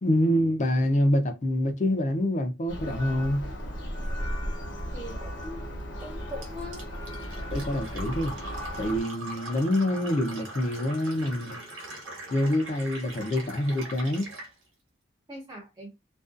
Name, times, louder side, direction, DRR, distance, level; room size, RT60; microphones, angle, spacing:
voice 1, 0.0-3.5 7.5-8.3 8.8-11.6 12.3-14.3, left 1 dB, 40° left, 0.4 m, -26 dB
Church bell, 2.7-9.0, equal, 60° left, 0.9 m, -35 dB
voice 2, 4.9-5.6 6.0-6.9 15.3-15.9, left 1 dB, 20° right, 0.4 m, -41 dB
Fill (with liquid), 6.4-14.5, right 1 dB, 85° right, 1.0 m, -41 dB
2.5 x 2.2 x 2.4 m
head